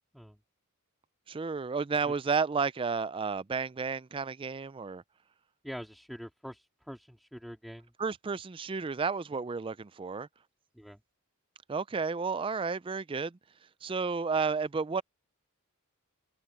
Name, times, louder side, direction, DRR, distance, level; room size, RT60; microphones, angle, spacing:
voice 1, 1.3-5.0 8.0-10.3 11.7-13.4 13.8-15.0, right 5 dB, 25° right, 0.4 m, -32 dB
voice 2, 5.6-7.9 10.7-11.0, equal, ahead, 3.2 m, -44 dB
head